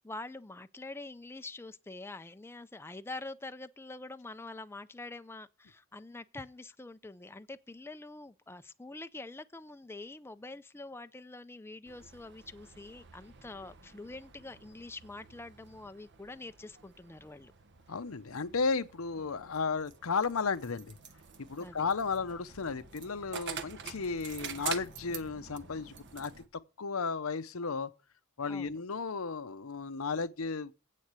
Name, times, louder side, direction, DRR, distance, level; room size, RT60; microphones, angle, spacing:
voice 1, 0.0-17.5 21.6-21.9 28.5-28.8, left 2 dB, 10° left, 0.5 m, -45 dB
sound 1, 11.8-26.5, right 7 dB, 60° right, 1.3 m, -47 dB
voice 2, 17.9-20.9 21.4-26.3 26.8-27.9 28.4-30.7, left 4 dB, 75° left, 0.8 m, -34 dB
8.5 x 6.4 x 8.2 m
head